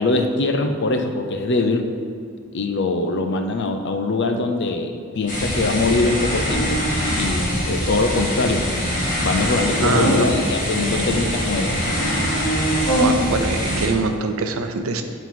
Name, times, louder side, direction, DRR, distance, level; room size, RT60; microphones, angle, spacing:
voice 1, 0.0-1.9 2.5-6.8 7.2-8.7 9.2-11.8, left 3 dB, 55° left, 6 dB, 0.6 m, -22 dB
sound 1, 5.3-13.9, equal, 40° left, 1.8 m, -22 dB
voice 2, 9.8-10.3 13.0-15.0, right 4 dB, 85° right, 7 dB, 0.6 m, -24 dB
7.4 x 4.0 x 5.6 m, 2.3 s
head